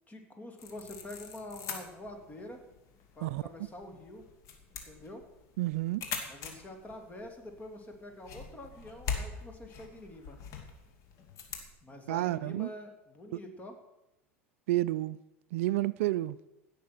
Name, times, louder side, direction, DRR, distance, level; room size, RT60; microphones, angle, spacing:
voice 1, 0.1-2.6 3.1-4.2 4.7-5.2 6.3-10.4 11.8-13.8, left 1 dB, 20° left, 3.0 m, -46 dB
sound 1, 0.6-11.7, left 6 dB, 50° left, 2.6 m, -43 dB
voice 2, 5.6-6.1 12.1-12.7 13.3-13.4 14.7-15.2 15.5-16.4, right 16 dB, 70° right, 0.4 m, -30 dB
16.5 x 6.7 x 6.2 m
hypercardioid pair, 90°, 7 cm